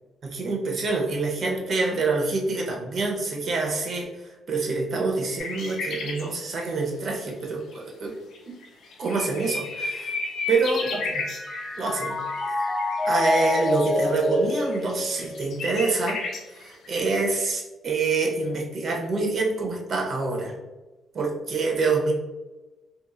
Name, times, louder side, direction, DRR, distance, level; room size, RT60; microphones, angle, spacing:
voice 1, 0.2-4.1 4.5-8.1 8.5-8.6 9.0-10.2 10.5-11.2 11.8-12.2 13.0-16.2 16.6-20.5 21.1-22.1, right 3 dB, 55° right, 0 dB, 0.7 m, -26 dB
sound 1, 5.4-6.3 7.7-7.8 8.3-8.4 8.6-17.5, left 3 dB, 70° left, 0.5 m, -34 dB
Mallet percussion, 9.5-16.0, left 2 dB, ahead, 0.4 m, -28 dB
2.8 x 2.5 x 2.3 m, 1.1 s
cardioid pair, 90°, 0 cm